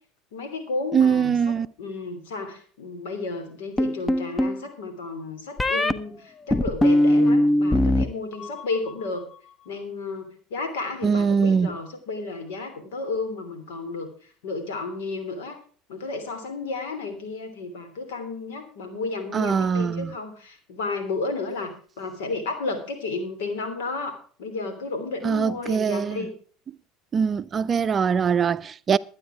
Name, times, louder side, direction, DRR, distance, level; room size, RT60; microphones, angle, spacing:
voice 1, 0.3-1.4 1.8-9.3 9.6-14.1 14.4-15.6 15.9-26.3, left 3 dB, 75° left, 3.1 m, -32 dB
voice 2, 0.9-1.7 11.0-11.8 19.3-20.1 25.2-26.3 27.1-29.0, right 6 dB, 35° right, 0.5 m, -22 dB
sound 1, 3.8-4.6 5.6-5.9 6.5-8.0 8.3-8.9, left 1 dB, 20° left, 0.9 m, -20 dB
12.5 x 9.6 x 4.7 m
hypercardioid pair, 80°, 0 cm